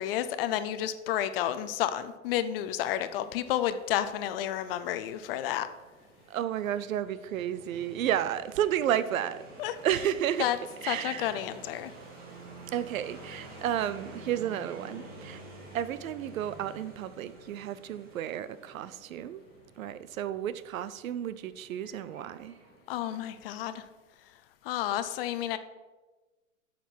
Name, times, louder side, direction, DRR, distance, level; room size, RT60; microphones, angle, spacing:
voice 1, 0.0-5.7 9.6-10.0 10.4-11.9 22.9-23.9 24.6-25.6, left 11 dB, 45° left, 12 dB, 0.6 m, -31 dB
sound 1, 4.5-23.5, right 2 dB, 20° right, 2.2 m, -50 dB
voice 2, 6.3-9.4 9.8-10.5 10.8-11.4 12.7-15.4 15.7-19.4 19.8-22.5, right 10 dB, 75° right, 15 dB, 0.7 m, -32 dB
9.2 x 5.9 x 4.5 m, 1.2 s
hypercardioid pair, 135°, 41 cm